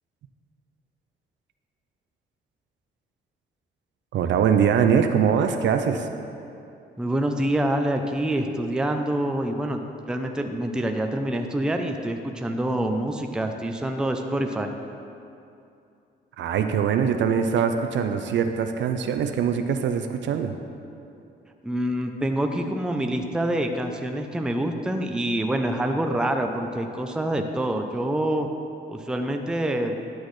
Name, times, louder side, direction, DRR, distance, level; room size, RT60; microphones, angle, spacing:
voice 1, 4.1-6.1 16.4-20.6, right 7 dB, 70° right, 7 dB, 0.5 m, -22 dB
voice 2, 7.0-9.8 10.1-14.7 21.6-28.5 28.9-30.0, right 1 dB, 5° right, 4 dB, 0.5 m, -26 dB
10.0 x 6.3 x 3.2 m, 2.6 s
cardioid pair, 90°, 20 cm